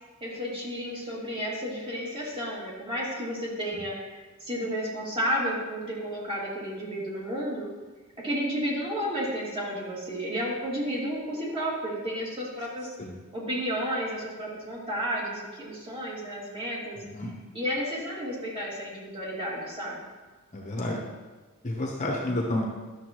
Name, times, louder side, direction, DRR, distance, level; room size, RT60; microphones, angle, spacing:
voice 1, 0.2-7.7 8.2-12.9 13.3-17.0 17.5-20.0, equal, 25° right, -6 dB, 2.6 m, -32 dB
voice 2, 17.0-17.3 20.5-21.0 21.6-22.6, left 1 dB, 35° left, -1 dB, 1.1 m, -30 dB
12.0 x 7.0 x 3.1 m, 1.3 s
head